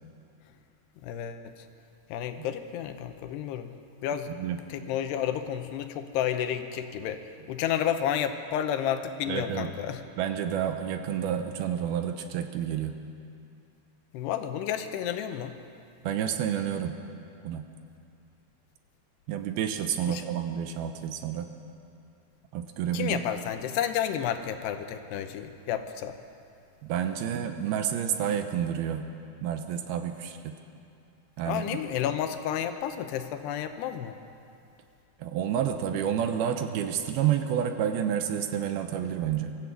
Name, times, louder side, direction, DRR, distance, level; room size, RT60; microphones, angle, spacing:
voice 1, 1.0-1.5 2.1-3.7 4.0-4.3 4.7-7.2 7.5-10.0 14.1-15.5 20.1-20.2 22.9-26.2 31.4-34.2, left 9 dB, 90° left, 8 dB, 3.0 m, -31 dB
voice 2, 9.3-9.7 10.2-13.0 16.0-17.0 17.4-17.7 19.3-21.5 22.5-23.2 26.8-29.1 29.4-30.6 31.4-31.8 35.2-39.6, right 9 dB, 75° right, 7 dB, 2.6 m, -29 dB
23.5 x 13.5 x 8.3 m, 2.6 s
omnidirectional pair, 4.8 m